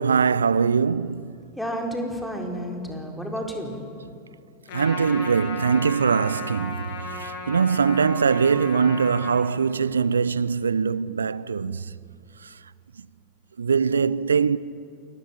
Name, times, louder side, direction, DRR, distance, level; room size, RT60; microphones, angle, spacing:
voice 1, 0.0-1.3 4.7-11.8 13.6-14.6, right 6 dB, 75° right, 0.6 m, -22 dB
voice 2, 1.6-3.7, equal, 5° left, 4.2 m, -31 dB
Trumpet, 4.7-9.4, left 3 dB, 50° left, 7.4 m, -35 dB
28.5 x 20.0 x 7.3 m
figure-of-eight pair, 85°, 0 cm